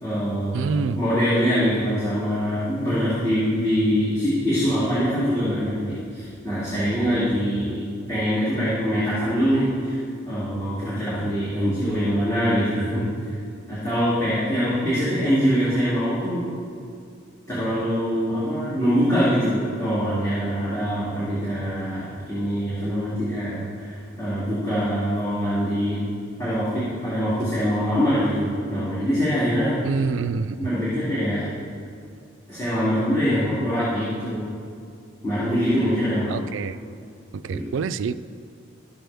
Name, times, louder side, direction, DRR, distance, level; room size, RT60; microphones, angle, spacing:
voice 1, 0.0-7.8 8.1-10.0 10.3-13.0 13.3-13.4 13.7-16.4 17.5-26.0 26.4-29.8 30.6-31.5 32.5-34.5 35.2-36.4 37.5-37.7, equal, 15° left, -13 dB, 2.6 m, -23 dB
voice 2, 0.5-1.0 29.8-30.7 36.3-36.8 37.3-38.1, right 5 dB, 70° right, 13 dB, 0.3 m, -26 dB
13.0 x 7.8 x 3.4 m, 2.3 s
head